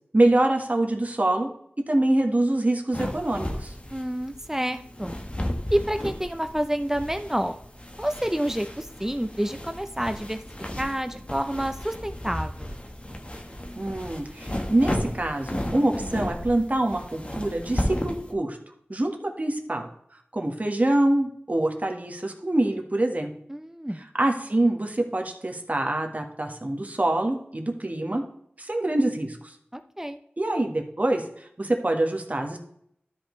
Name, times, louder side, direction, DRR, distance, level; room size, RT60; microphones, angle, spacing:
voice 1, 0.1-1.5 1.9-3.7 13.7-18.6 18.9-19.9 20.3-23.3 24.1-28.2 28.6-29.4 30.4-31.2 31.6-32.6, right 1 dB, 40° right, 3 dB, 1.4 m, -25 dB
sound 1, 2.9-18.3, left 1 dB, 30° left, 1.3 m, -34 dB
voice 2, 3.9-5.2 5.7-7.5 8.0-10.4 10.8-12.8 23.5-24.0 29.7-30.2, equal, 10° right, 8 dB, 0.6 m, -28 dB
12.5 x 5.2 x 3.2 m, 0.69 s
wide cardioid pair, 55°, 4 cm